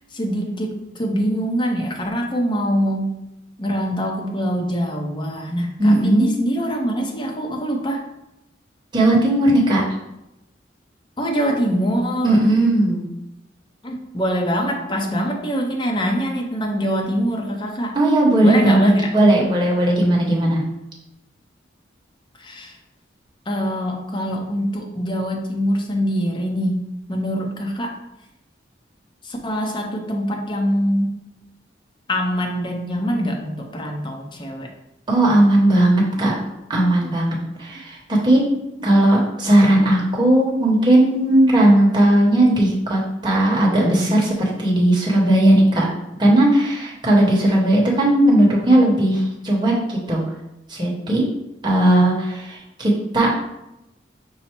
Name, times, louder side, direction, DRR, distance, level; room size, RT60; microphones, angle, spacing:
voice 1, 0.1-3.2 3.6-8.1 11.2-12.5 13.8-18.0 18.4-19.1 22.4-22.7 23.5-26.8 27.1-28.0 29.2-31.2 32.1-34.7, equal, 25° left, 1 dB, 0.6 m, -24 dB
voice 2, 5.8-6.3 8.9-9.8 12.2-13.0 17.9-20.6 35.1-36.3 36.7-38.0 38.2-38.4 38.8-45.9 46.2-50.3 50.7-51.3 51.6-53.3, right 1 dB, 25° right, -3 dB, 1.0 m, -17 dB
5.5 x 2.0 x 4.3 m, 0.89 s
head